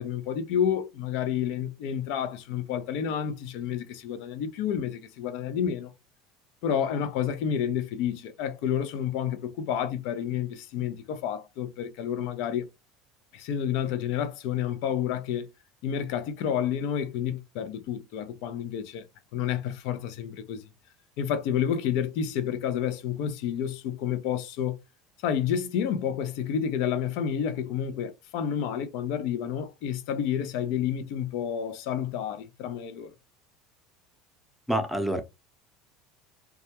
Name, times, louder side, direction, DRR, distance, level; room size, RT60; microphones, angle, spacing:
voice 1, 0.0-5.9 6.6-12.7 13.3-15.5 15.8-19.0 19.3-20.6 21.2-24.8 25.2-33.1, left 8 dB, 70° left, 0.5 m, -30 dB
voice 2, 34.7-35.2, right 1 dB, ahead, 0.7 m, -26 dB
2.3 x 2.1 x 2.8 m
hypercardioid pair, 90°, 0 cm